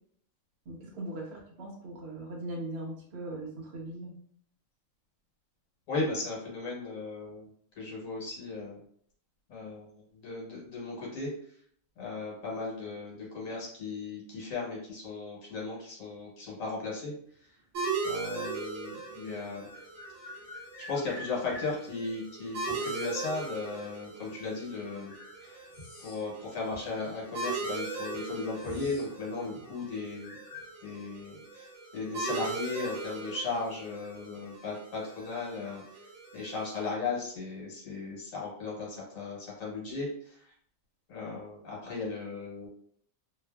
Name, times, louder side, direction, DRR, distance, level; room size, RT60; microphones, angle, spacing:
voice 1, 0.7-4.1, right 2 dB, 55° right, -2 dB, 1.0 m, -39 dB
voice 2, 5.9-7.5 7.8-8.8 9.5-11.3 12.0-17.1 18.0-19.7 20.9-25.1 25.4-25.7 26.0-30.4 30.8-36.0 36.3-40.5 41.1-42.7, left 3 dB, 85° left, -4 dB, 1.3 m, -36 dB
sound 1, 17.7-36.9, right 4 dB, 75° right, 1.2 m, -39 dB
sound 2, 18.5-18.6 19.6-21.8 22.6-23.2 24.3-24.4 25.0-26.4 26.7-26.8 27.6-27.7 28.0-29.1 29.4-29.7 30.2-30.7, left 2 dB, 50° left, 0.7 m, -47 dB
2.6 x 2.4 x 2.2 m, 0.63 s
omnidirectional pair, 1.3 m